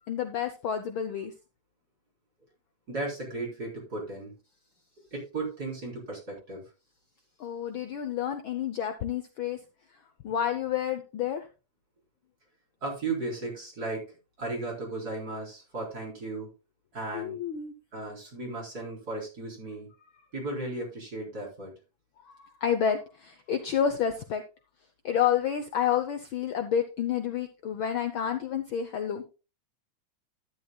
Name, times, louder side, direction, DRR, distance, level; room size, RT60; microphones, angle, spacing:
voice 1, 0.1-1.3 7.4-9.6 10.2-11.5 17.1-17.7 22.3-24.4 25.0-29.2, left 8 dB, 80° left, 7 dB, 1.1 m, -29 dB
voice 2, 2.9-4.3 5.1-6.6 12.8-16.5 16.9-17.4 17.9-19.9 20.3-21.7, right 2 dB, 30° right, -2 dB, 4.6 m, -35 dB
12.5 x 11.0 x 2.3 m, 0.31 s
omnidirectional pair, 3.4 m